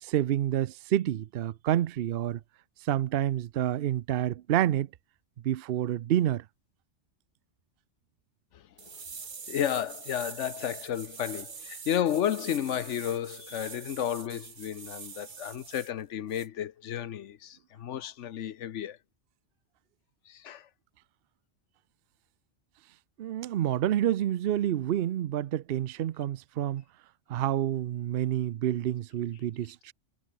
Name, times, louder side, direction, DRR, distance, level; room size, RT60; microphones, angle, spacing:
voice 1, 0.0-2.4 2.8-4.9 5.4-6.4 23.2-26.8 27.3-29.9, right 12 dB, 60° right, 0.7 m, -28 dB
sound 1, 8.8-15.9 16.3-16.5, right 5 dB, 45° right, 1.3 m, -44 dB
voice 2, 9.5-19.0 20.3-20.7, left 10 dB, 80° left, 1.1 m, -32 dB
omnidirectional pair, 1.2 m